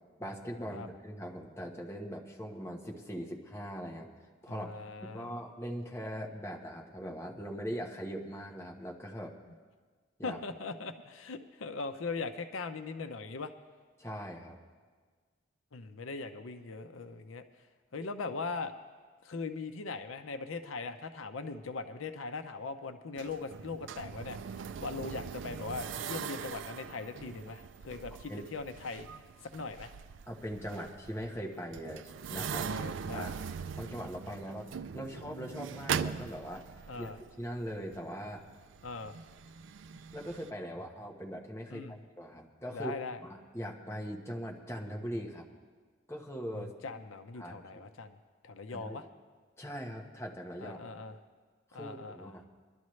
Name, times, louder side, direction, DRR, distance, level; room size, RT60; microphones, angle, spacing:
voice 1, 0.2-4.1 4.4-4.7 5.0-9.3 10.2-10.4 14.0-14.6 28.3-28.4 30.3-32.7 33.1-33.3 33.8-34.7 34.9-37.1 37.4-38.4 40.1-42.9 43.2-45.5 46.1-46.7 47.4-47.8 48.7-49.0 49.6-50.9 51.7-52.4, equal, 15° left, -1 dB, 1.1 m, -41 dB
voice 2, 4.5-5.3 10.2-13.5 15.7-17.4 17.9-18.7 19.2-29.1 29.4-29.9 32.6-33.3 36.9-37.2 38.8-39.2 41.7-42.0 42.7-43.2 46.5-48.2 48.4-49.1 50.6-51.2 51.7-52.4, left 4 dB, 90° left, 8 dB, 0.7 m, -40 dB
sound 1, 23.2-40.5, right 7 dB, 65° right, 0.4 m, -41 dB
22.0 x 11.5 x 3.2 m, 1.5 s
head